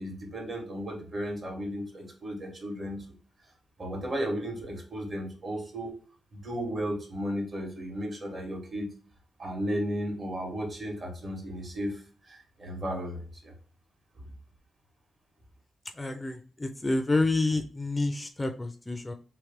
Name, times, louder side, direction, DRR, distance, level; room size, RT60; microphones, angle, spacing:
voice 1, 0.0-3.0 3.8-5.9 6.3-8.9 9.4-13.5, equal, 45° right, 1 dB, 1.6 m, -34 dB
voice 2, 16.0-19.1, left 2 dB, 20° left, 6 dB, 0.4 m, -28 dB
3.2 x 2.9 x 3.5 m, 0.39 s
cardioid pair, 105°, 0 cm